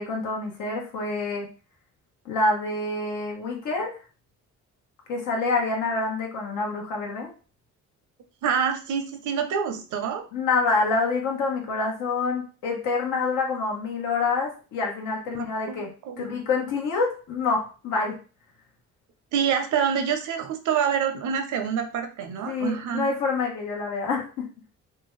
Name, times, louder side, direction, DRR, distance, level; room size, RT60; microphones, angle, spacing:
voice 1, 0.0-1.5 2.2-3.9 5.1-7.3 10.3-15.9 16.2-18.2 22.5-24.4, left 3 dB, 85° left, 0 dB, 1.0 m, -27 dB
voice 2, 8.4-10.3 15.3-16.3 19.3-23.1, right 7 dB, 75° right, 6 dB, 0.6 m, -27 dB
2.7 x 2.3 x 3.1 m, 0.36 s
cardioid pair, 90°, 30 cm